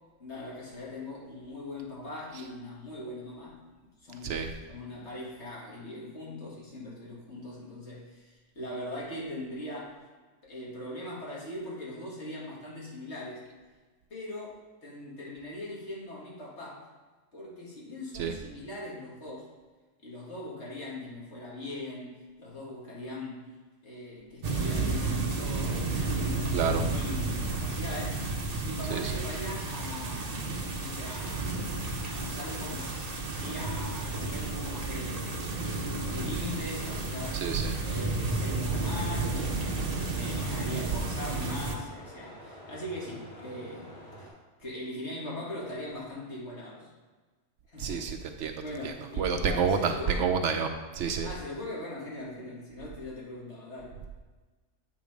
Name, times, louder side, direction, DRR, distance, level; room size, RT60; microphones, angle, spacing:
voice 1, 0.2-3.6 4.0-10.0 10.4-13.5 14.1-16.9 17.3-19.5 20.0-23.5 23.8-37.5 37.8-44.3 44.6-46.9 47.7-48.1 48.6-50.3 51.2-54.0, left 1 dB, 60° left, -5 dB, 2.2 m, -41 dB
sound 1, 24.4-41.8, right 3 dB, 40° right, 0.7 m, -32 dB
voice 2, 26.5-26.9 28.9-29.2 37.4-37.8 47.8-51.3, right 6 dB, 70° right, 5 dB, 0.8 m, -29 dB
sound 2, 38.7-44.3, equal, 25° left, 2.0 m, -47 dB
8.4 x 3.8 x 5.0 m, 1.3 s
omnidirectional pair, 1.3 m